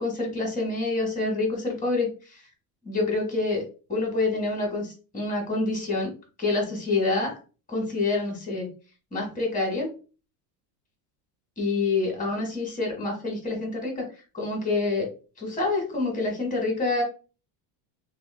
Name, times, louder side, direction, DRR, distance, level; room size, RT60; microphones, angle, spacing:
voice 1, 0.0-2.1 2.8-3.6 3.9-6.1 6.4-7.3 7.7-8.7 9.1-9.9 11.6-14.1 14.3-15.1 15.4-17.0, left 3 dB, 15° left, 0 dB, 1.5 m, -27 dB
2.9 x 2.6 x 2.2 m, 0.35 s
supercardioid pair, 95°, 48 cm